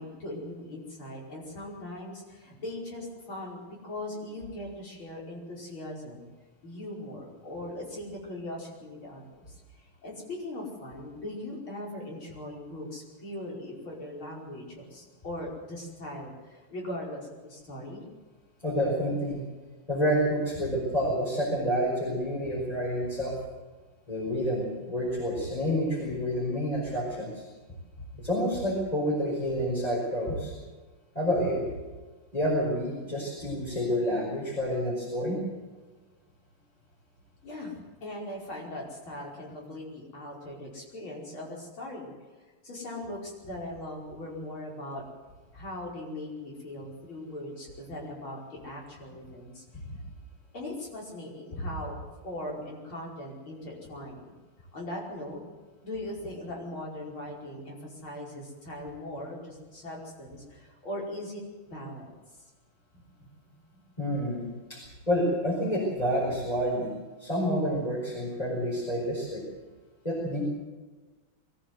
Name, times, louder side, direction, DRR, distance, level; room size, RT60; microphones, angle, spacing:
voice 1, 0.0-6.3 6.6-18.0 37.4-42.1 42.6-45.0 45.5-49.6 50.5-52.0 52.2-54.4 54.7-55.4 55.8-61.4 61.7-62.1 62.9-63.0 63.4-63.5, left 1 dB, 80° left, -3 dB, 6.1 m, -40 dB
voice 2, 18.6-19.4 19.9-23.4 24.1-27.4 28.2-30.5 31.2-31.7 32.3-35.4 64.0-64.8 65.1-66.9 67.2-69.4 70.0-70.5, equal, 15° left, -4 dB, 5.3 m, -28 dB
22.5 x 14.5 x 8.0 m, 1.3 s
omnidirectional pair, 2.2 m